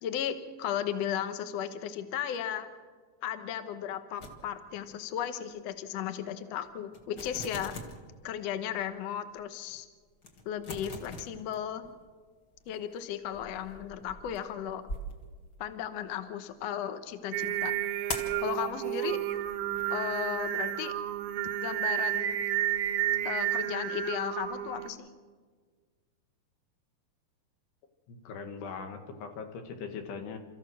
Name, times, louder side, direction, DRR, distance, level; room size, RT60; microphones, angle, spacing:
voice 1, 0.0-2.7 3.2-7.8 8.2-9.9 10.4-11.9 12.7-14.8 15.6-17.7 18.4-19.2 19.9-21.0 21.6-22.4 23.2-25.1, left 9 dB, 70° left, 9 dB, 1.6 m, -35 dB
sound 1, 4.2-4.9 5.2-5.4 6.0-6.1 6.5-6.6 6.9-8.1 8.7-8.8 9.4-9.5 9.7-9.8 10.2-12.1 12.4-16.1 18.1-18.4 19.1-19.9, left 1 dB, 50° left, 1.2 m, -42 dB
Singing, 17.3-24.9, right 12 dB, 80° right, 1.8 m, -31 dB
voice 2, 28.1-30.4, left 5 dB, 90° left, 6 dB, 3.7 m, -40 dB
29.5 x 14.0 x 6.4 m, 1.5 s
omnidirectional pair, 4.6 m